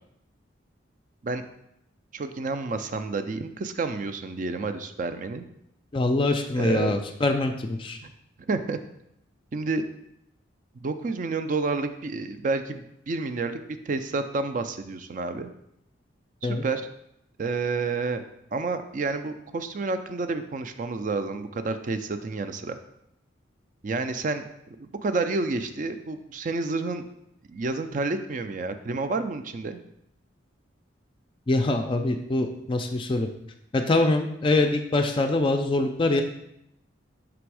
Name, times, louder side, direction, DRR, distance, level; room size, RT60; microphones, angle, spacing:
voice 1, 2.1-5.5 6.6-6.9 8.0-8.1 8.5-8.8 9.5-9.8 10.7-13.6 13.9-15.5 16.4-16.8 17.4-18.2 18.5-22.8 23.8-24.5 24.8-27.0 27.5-29.8, right 3 dB, 40° right, 9 dB, 0.4 m, -29 dB
voice 2, 5.9-8.0 16.4-16.6 31.5-33.3 33.7-36.2, left 2 dB, 25° left, 5 dB, 0.3 m, -24 dB
6.0 x 3.5 x 4.7 m, 0.79 s
head